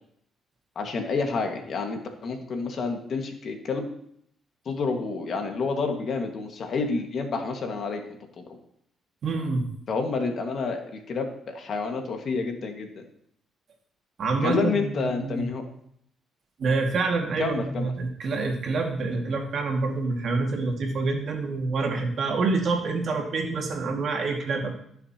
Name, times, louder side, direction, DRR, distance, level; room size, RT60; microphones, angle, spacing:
voice 1, 0.7-3.8 4.6-8.0 8.4-8.6 9.9-12.9 14.4-15.6 17.4-17.9, left 4 dB, 55° left, 4 dB, 1.7 m, -29 dB
voice 2, 9.2-9.7 14.2-15.4 16.6-24.7, right 3 dB, 60° right, 1 dB, 2.1 m, -27 dB
16.5 x 6.7 x 2.9 m, 0.70 s
cardioid pair, 90°, 0 cm